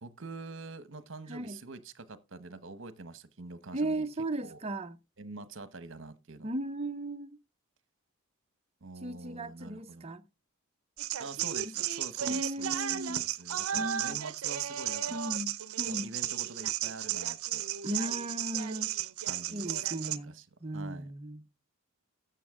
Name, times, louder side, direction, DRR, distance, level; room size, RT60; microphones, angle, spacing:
voice 1, 0.0-4.1 4.4-4.6 5.2-6.5 8.8-10.1 11.2-15.2 15.9-17.7 19.3-19.7 20.3-20.4 20.7-21.1, right 3 dB, 60° right, 1.0 m, -45 dB
voice 2, 1.3-1.6 3.7-5.0 6.4-7.4 9.0-10.2 12.2-13.3 13.7-14.2 15.1-15.5 15.8-16.1 17.8-18.9 19.5-21.5, right 1 dB, 30° right, 0.6 m, -36 dB
sound 1, 11.0-20.2, right 11 dB, 80° right, 0.6 m, -34 dB
12.5 x 7.1 x 3.6 m
head